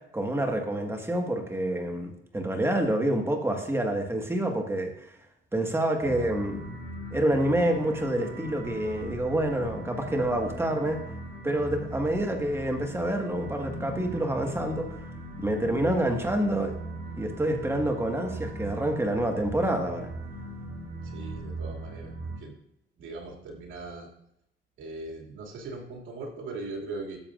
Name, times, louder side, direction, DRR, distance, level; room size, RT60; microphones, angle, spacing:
voice 1, 0.1-5.1 5.5-6.6 7.1-11.0 11.4-15.0 15.4-16.8 17.2-20.1, right 1 dB, 10° right, 3 dB, 1.7 m, -27 dB
sound 1, 6.0-22.4, right 2 dB, 60° right, 3.8 m, -39 dB
voice 2, 21.0-22.1 22.4-22.5 23.0-24.1 24.8-27.2, right 3 dB, 80° right, -1 dB, 2.7 m, -39 dB
13.0 x 7.3 x 2.6 m, 0.79 s
cardioid pair, 90°, 20 cm